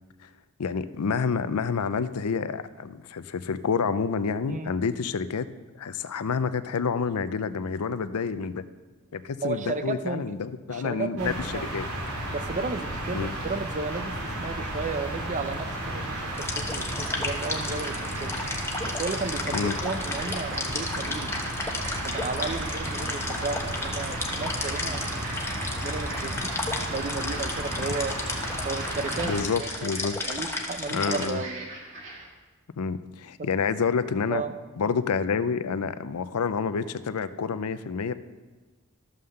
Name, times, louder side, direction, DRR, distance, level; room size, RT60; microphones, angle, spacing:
voice 1, 0.6-5.5 5.8-8.6 9.1-11.9 13.1-13.3 19.5-19.7 29.2-30.2 30.9-31.4 32.8-34.4 34.8-38.1, left 5 dB, 85° left, 13 dB, 0.5 m, -28 dB
voice 2, 9.4-10.2 10.7-11.7 12.3-18.3 18.8-21.3 22.1-25.0 25.8-26.4 26.7-28.2 28.6-29.9 30.3-31.6 33.4-33.5 34.3-34.6, right 3 dB, 35° right, 10 dB, 0.6 m, -33 dB
sound 1, 11.2-29.4, right 1 dB, 80° right, 2.9 m, -33 dB
sound 2, 16.4-31.3, left 2 dB, 10° left, 1.0 m, -34 dB
sound 3, 17.0-32.3, right 2 dB, 60° right, 2.1 m, -43 dB
13.0 x 5.7 x 6.6 m, 1.3 s
head